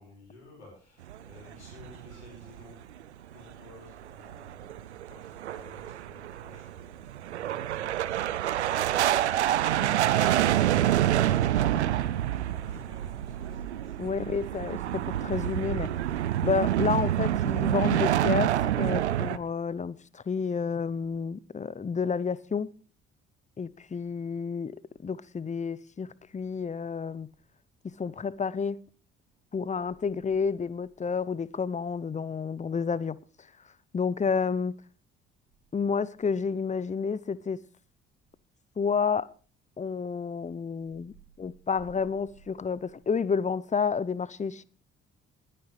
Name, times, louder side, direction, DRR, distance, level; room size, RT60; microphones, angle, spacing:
voice 1, 0.0-2.8 3.3-8.4 8.9-9.6 10.0-14.3, left 2 dB, 90° left, 5.3 m, -53 dB
sound 1, 1.0-2.7 3.0-3.1 3.5-3.6 4.0-19.4, right 12 dB, 90° right, 0.5 m, -27 dB
voice 2, 14.0-16.0 16.4-22.7 23.6-24.8 25.0-26.1 26.3-27.3 27.8-28.8 29.5-33.2 33.9-34.7 35.7-37.6 38.8-39.3 39.8-44.6, left 5 dB, 20° left, 0.7 m, -30 dB
20.0 x 10.0 x 3.3 m
figure-of-eight pair, 45°, 33 cm